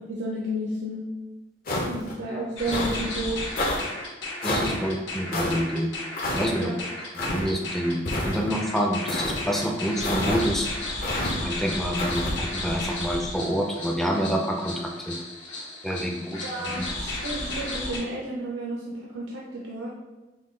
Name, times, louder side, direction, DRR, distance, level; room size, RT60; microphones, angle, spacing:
voice 1, 0.1-1.1 1.9-3.6 6.6-6.8 16.4-19.9, right 1 dB, 75° right, -4 dB, 0.6 m, -32 dB
sound 1, 1.7-2.1 2.7-3.0 3.6-3.8 4.4-4.7 5.3-5.5 6.2-6.4 7.1-7.5 8.1-8.5 9.1-9.4 10.0-10.4 11.0-11.3 12.0-12.3, left 1 dB, 50° left, 0.7 m, -28 dB
sound 2, 2.6-18.0, left 2 dB, 75° left, 1.2 m, -34 dB
voice 2, 4.4-5.9 6.3-6.7 7.1-8.0 8.2-10.7 11.4-15.2 15.8-16.9, equal, ahead, 0 dB, 0.4 m, -27 dB
5.5 x 2.2 x 3.1 m, 1.1 s
head